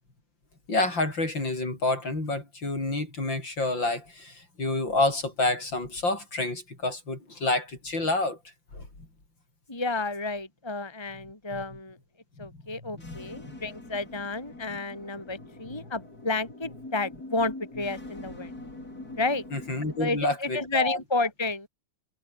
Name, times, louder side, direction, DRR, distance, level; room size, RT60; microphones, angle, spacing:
voice 1, 0.7-8.4 8.7-8.9 11.5-11.6 12.4-12.5 12.9-13.6 19.5-21.0, left 2 dB, 60° left, 7.9 m, -28 dB
voice 2, 9.7-12.0 12.4-18.5 19.2-19.4 20.0-21.7, left 3 dB, 10° left, 2.6 m, -31 dB
sound 1, 12.9-20.1, left 2 dB, 45° left, 7.9 m, -44 dB
omnidirectional pair, 2.3 m